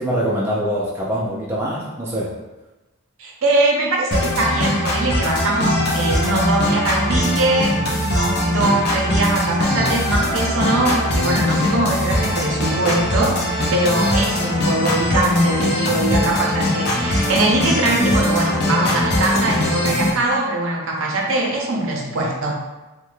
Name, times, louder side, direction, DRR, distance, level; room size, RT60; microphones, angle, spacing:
voice 1, 0.0-2.3 18.0-18.1, equal, 10° right, -6 dB, 0.4 m, -24 dB
voice 2, 3.2-22.7, right 1 dB, 60° right, -1 dB, 0.6 m, -21 dB
sound 1, 4.1-20.1, left 1 dB, 45° left, 0.6 m, -21 dB
3.1 x 2.1 x 3.1 m, 1.1 s
head